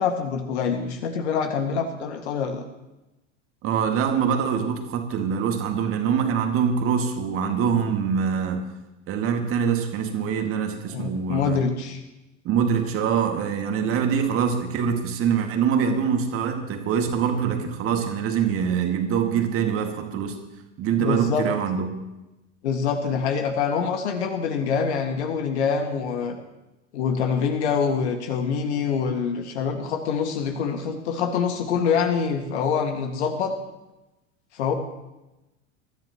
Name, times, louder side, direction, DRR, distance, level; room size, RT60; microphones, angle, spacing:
voice 1, 0.0-2.6 10.9-12.0 21.0-21.5 22.6-26.3 26.9-33.6 34.5-34.7, left 6 dB, 60° left, 4 dB, 2.2 m, -25 dB
voice 2, 3.6-8.6 9.1-11.6 12.4-20.4 20.8-21.9, right 7 dB, 35° right, 4 dB, 2.2 m, -24 dB
22.5 x 13.5 x 3.1 m, 0.98 s
figure-of-eight pair, 85°, 38 cm